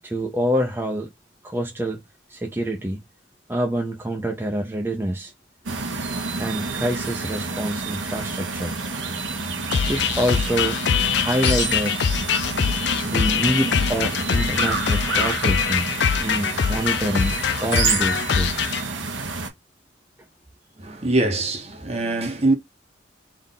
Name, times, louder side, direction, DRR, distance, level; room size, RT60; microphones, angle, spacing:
voice 1, 0.0-1.1 1.4-2.0 2.3-3.0 3.5-5.3 6.4-8.8 9.9-10.8 11.1-12.0 13.0-15.9 16.2-18.7, right 1 dB, 10° right, 0.6 m, -26 dB
sound 1, 5.7-19.5, right 4 dB, 85° right, 1.1 m, -29 dB
sound 2, 9.7-18.8, left 7 dB, 60° left, 0.4 m, -23 dB
voice 2, 20.8-22.6, right 2 dB, 35° right, 0.9 m, -23 dB
3.7 x 2.5 x 3.9 m
head